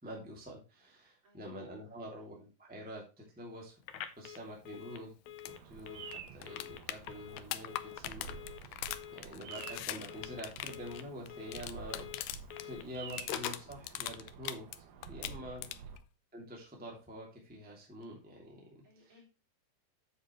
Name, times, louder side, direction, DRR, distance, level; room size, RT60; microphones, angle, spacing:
voice 1, 0.0-5.1 5.4-15.6 16.3-19.1, equal, 5° right, -2 dB, 2.3 m, -47 dB
voice 2, 1.2-1.6 2.1-2.2 6.2-6.4 9.0-9.3 15.6-15.8 18.8-19.3, left 1 dB, 40° right, -2 dB, 4.5 m, -65 dB
Telephone, 3.8-13.7, left 10 dB, 70° left, 2.1 m, -48 dB
sound 1, 5.4-5.5 5.8-5.9 6.1-12.7 12.9-14.8 15.0-16.0 18.0-18.1, left 14 dB, 90° left, 2.3 m, -41 dB
Bird vocalization bird call bird song, 5.5-16.0, right 6 dB, 80° right, 2.7 m, -50 dB
8.9 x 7.9 x 3.2 m, 0.31 s
omnidirectional pair, 3.7 m